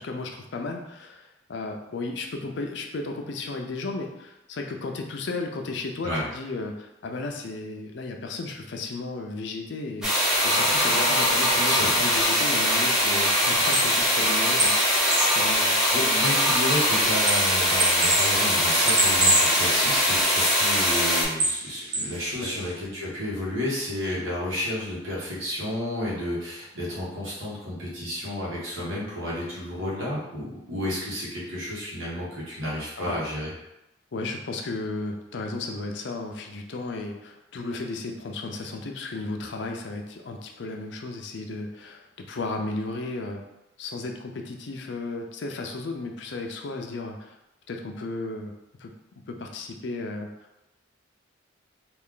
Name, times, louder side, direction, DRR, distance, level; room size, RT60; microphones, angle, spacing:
voice 1, 0.0-10.1 10.4-14.7 15.2-15.8 22.4-22.7 29.8-29.9 33.0-33.2 34.1-43.4 43.8-47.4 47.7-48.5 48.8-48.9 49.3-50.3, left 3 dB, 60° left, 3 dB, 0.5 m, -34 dB
sound 1, 10.0-21.2, equal, 5° right, 0.7 m, -22 dB
voice 2, 11.5-11.9 15.9-33.5, left 1 dB, 85° right, -6 dB, 1.4 m, -31 dB
sound 2, 13.5-22.7, right 1 dB, 55° right, 0.9 m, -29 dB
3.3 x 2.4 x 3.7 m, 0.91 s
head